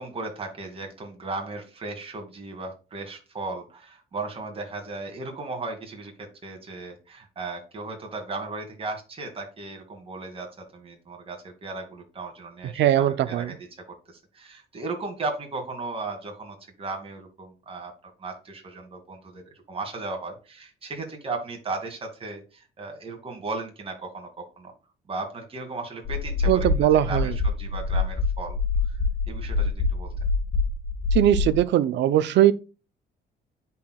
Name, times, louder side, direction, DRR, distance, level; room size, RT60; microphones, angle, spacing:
voice 1, 0.0-13.5 14.1-17.9 18.2-24.7 25.1-28.6 28.9-29.0 29.3-30.1, right 3 dB, 30° right, 2.2 m, -36 dB
voice 2, 12.8-13.5 26.5-27.3 31.1-32.5, right 12 dB, 80° right, 0.6 m, -20 dB
sound 1, 26.0-31.6, left 3 dB, 60° left, 1.7 m, -26 dB
10.5 x 4.6 x 2.3 m
cardioid pair, 130°, 18 cm